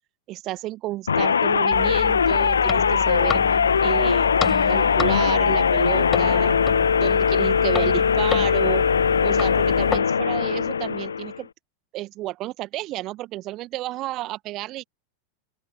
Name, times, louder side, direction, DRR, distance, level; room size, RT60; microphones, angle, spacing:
voice 1, 0.3-3.4 3.8-4.3 4.7-6.6 7.0-8.8 9.2-11.5 11.9-14.8, right 17 dB, 35° right, 1.8 m, -31 dB
sound 1, 1.1-11.4, left 6 dB, 70° left, 1.5 m, -20 dB
sound 2, 1.7-10.0, left 7 dB, 20° left, 6.6 m, -31 dB
open air
figure-of-eight pair, 90°, 0 cm